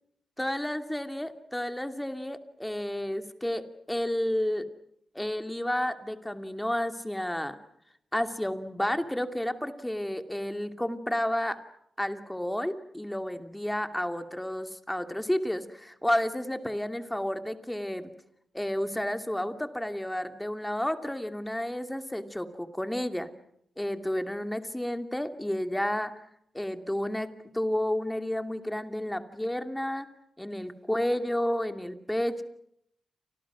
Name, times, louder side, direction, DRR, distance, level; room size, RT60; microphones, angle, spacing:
voice 1, 0.4-4.6 5.1-7.6 8.1-11.6 12.0-18.1 18.5-23.3 23.8-26.1 26.5-27.3 27.5-30.1 30.4-32.4, left 1 dB, 5° left, 7 dB, 2.6 m, -31 dB
29.5 x 26.0 x 6.2 m, 0.74 s
cardioid pair, 95°, 0 cm